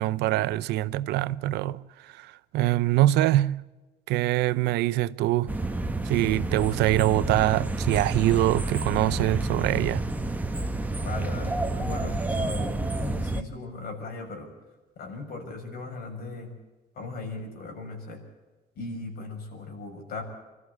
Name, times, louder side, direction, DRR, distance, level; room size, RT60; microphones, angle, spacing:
voice 1, 0.0-3.6 4.1-5.5 6.1-10.0, right 15 dB, 85° right, 0.7 m, -24 dB
sound 1, 5.5-13.4, right 2 dB, 10° right, 1.4 m, -29 dB
voice 2, 10.9-14.5 15.0-16.5 16.9-18.2 18.7-20.2, left 3 dB, 65° left, 6.5 m, -38 dB
25.0 x 14.0 x 8.3 m
cardioid pair, 110°, 17 cm